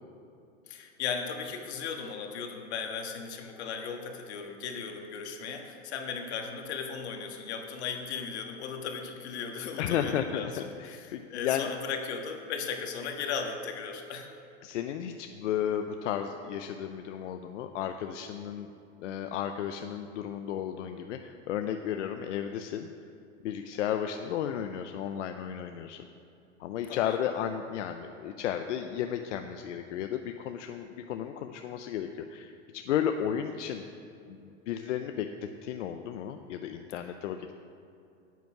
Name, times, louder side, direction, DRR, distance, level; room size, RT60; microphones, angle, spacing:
voice 1, 0.7-14.3 26.9-27.2, left 6 dB, 65° left, 4 dB, 1.5 m, -37 dB
voice 2, 9.8-11.7 14.6-18.7 19.0-22.9 23.4-26.0 26.6-33.8 34.3-35.3 35.6-37.5, left 9 dB, 85° left, 6 dB, 0.6 m, -33 dB
9.3 x 8.2 x 5.9 m, 2.6 s
supercardioid pair, 165°, 36 cm